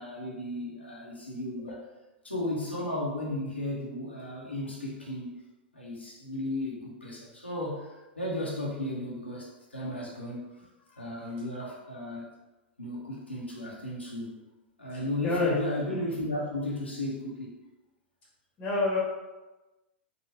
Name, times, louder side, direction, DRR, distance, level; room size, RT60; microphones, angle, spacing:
voice 1, 0.0-1.8 2.2-5.4 5.7-10.6 11.0-12.3 12.8-14.3 14.8-17.5, left 1 dB, 90° left, -5 dB, 0.8 m, -35 dB
voice 2, 14.9-15.6 18.6-19.0, left 2 dB, 25° left, -5 dB, 1.0 m, -28 dB
3.9 x 2.2 x 2.8 m, 1.1 s
figure-of-eight pair, 100°, 6 cm